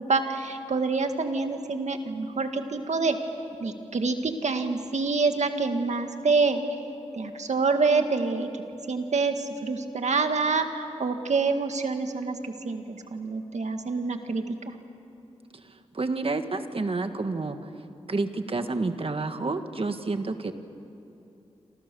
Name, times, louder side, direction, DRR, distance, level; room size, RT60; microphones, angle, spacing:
voice 1, 0.0-3.2 3.6-6.6 7.1-14.8, right 4 dB, 80° right, 6 dB, 2.0 m, -27 dB
voice 2, 15.6-17.6 18.1-20.5, right 3 dB, 55° right, 8 dB, 1.6 m, -29 dB
28.0 x 27.5 x 7.0 m, 2.7 s
wide cardioid pair, 65°, 12 cm